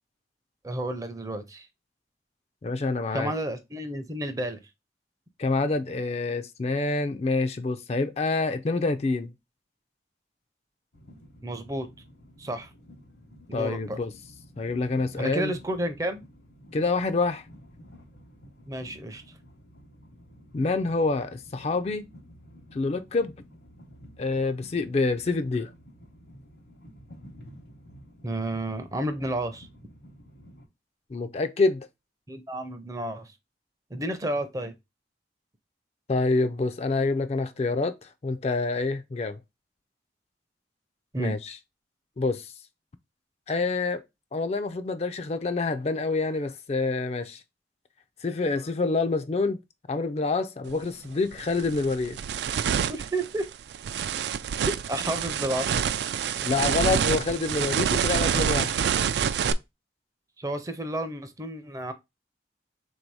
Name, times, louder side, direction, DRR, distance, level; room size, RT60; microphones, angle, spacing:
voice 1, 0.6-1.7 3.1-4.6 11.4-11.9 12.4-12.7 13.5-14.0 15.2-16.2 18.7-19.2 28.2-29.7 32.3-33.3 33.9-34.7 41.1-41.4 52.9-53.5 54.6-55.7 60.4-61.9, right 1 dB, 20° right, 0.5 m, -31 dB
voice 2, 2.6-3.3 5.4-9.3 13.5-14.1 14.6-15.5 16.7-17.4 20.5-22.1 22.7-23.3 24.2-25.7 31.1-31.9 36.1-39.4 41.2-41.5 42.2-42.5 43.5-44.0 44.3-47.4 48.2-49.6 49.9-52.2 56.4-58.8, left 3 dB, 35° left, 0.4 m, -27 dB
Train, 10.9-30.7, equal, 75° left, 1.0 m, -51 dB
sound 1, 50.7-50.8 51.3-59.5, right 8 dB, 75° right, 0.3 m, -27 dB
3.7 x 2.7 x 4.6 m
head